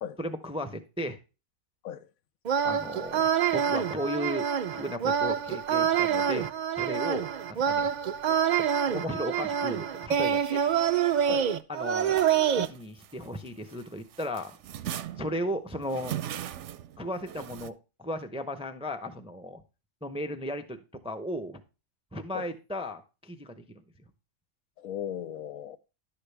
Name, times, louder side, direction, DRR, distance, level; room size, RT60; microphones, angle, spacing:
voice 1, 0.2-1.2 2.6-6.5 6.8-7.3 7.7-7.9 8.6-10.6 11.7-12.2 12.5-14.6 15.1-16.1 17.0-19.6 20.0-21.6 22.1-23.6, equal, 10° right, 0.4 m, -35 dB
sound 1, 2.4-12.7, right 8 dB, 90° right, 0.3 m, -26 dB
sound 2, 12.1-13.8 14.1-17.7, right 11 dB, 65° right, 0.8 m, -39 dB
voice 2, 24.8-25.8, left 9 dB, 80° left, 1.1 m, -36 dB
11.0 x 6.8 x 3.3 m
omnidirectional pair, 1.4 m